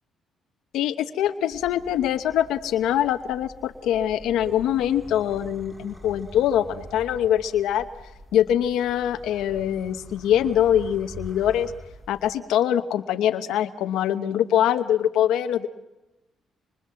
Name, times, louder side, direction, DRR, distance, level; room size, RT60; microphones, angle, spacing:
voice 1, 0.7-7.9 8.3-11.7 12.1-15.7, left 10 dB, 85° left, 8 dB, 0.9 m, -23 dB
sound 1, 1.5-12.3, equal, 10° right, 7.3 m, -45 dB
26.0 x 24.5 x 7.6 m, 1.0 s
cardioid pair, 90°, 0 cm